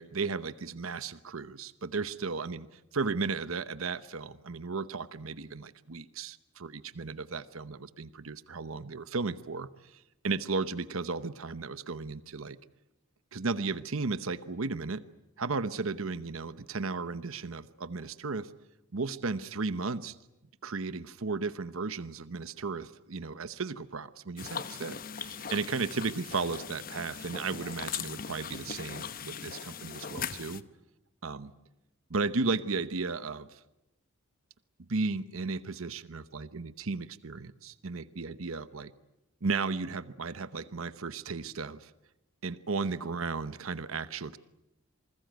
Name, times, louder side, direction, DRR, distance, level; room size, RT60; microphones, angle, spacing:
voice 1, 0.0-12.6 13.3-15.0 15.4-18.5 18.9-20.2 20.6-30.6 31.2-31.5 32.1-33.6 34.9-38.9 39.4-41.9 42.4-44.4, right 4 dB, 80° right, 13 dB, 0.9 m, -35 dB
sound 1, 24.4-30.6, left 7 dB, 40° left, 0.9 m, -40 dB
28.0 x 21.0 x 9.3 m, 0.93 s
head